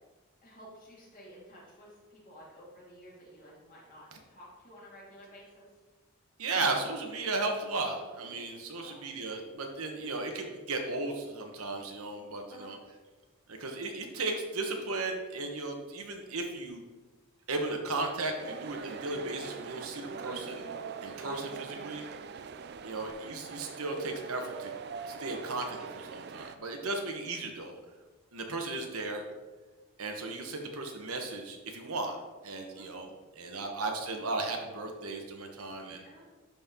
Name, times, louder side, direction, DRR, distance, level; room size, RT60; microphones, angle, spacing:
voice 1, 0.4-5.7 8.8-9.0 12.5-12.7 21.2-21.4 22.9-23.1 28.7-28.9 32.7-32.9 33.5-33.7 36.0-36.3, equal, 40° left, -5 dB, 2.3 m, -53 dB
voice 2, 6.4-12.8 13.5-16.8 17.5-20.6 21.0-22.0 22.8-24.7 25.0-27.8 28.3-29.2 30.0-32.2 32.4-36.0, right 3 dB, 80° right, 3 dB, 1.2 m, -35 dB
sound 1, 18.4-26.6, right 6 dB, 50° right, 0.4 m, -42 dB
11.0 x 4.4 x 3.7 m, 1.3 s
head